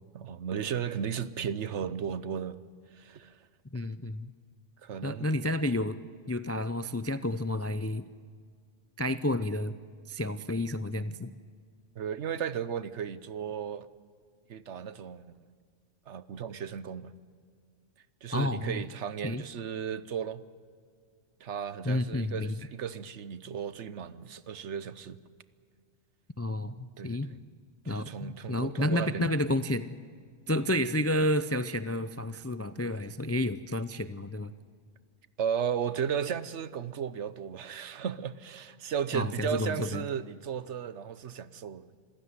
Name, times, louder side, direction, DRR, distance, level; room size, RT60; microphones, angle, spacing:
voice 1, 0.1-2.6 2.9-3.4 4.8-5.3 12.0-13.9 14.5-15.3 16.1-17.1 18.2-20.4 21.4-25.2 27.0-27.4 27.8-29.3 35.4-42.0, right 8 dB, 70° right, 1.1 m, -35 dB
voice 2, 3.7-4.3 5.0-6.0 6.3-8.1 9.0-9.7 10.1-11.3 18.3-18.8 19.2-19.4 21.8-22.6 26.4-27.3 27.9-30.0 30.5-34.5 39.1-40.0, left 1 dB, 20° left, 0.3 m, -30 dB
26.5 x 15.5 x 9.7 m
omnidirectional pair, 1.3 m